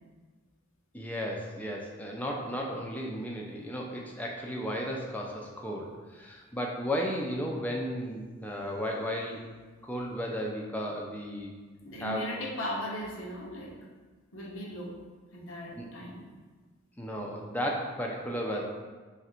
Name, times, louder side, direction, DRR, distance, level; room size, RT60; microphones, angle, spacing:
voice 1, 0.9-9.4 9.8-11.5 12.0-12.5 15.8-15.9 17.0-18.6, equal, 5° left, -1 dB, 0.3 m, -34 dB
voice 2, 11.8-13.7 14.3-14.9 15.3-16.2, equal, 75° left, -3 dB, 0.8 m, -37 dB
3.1 x 2.5 x 4.2 m, 1.4 s
head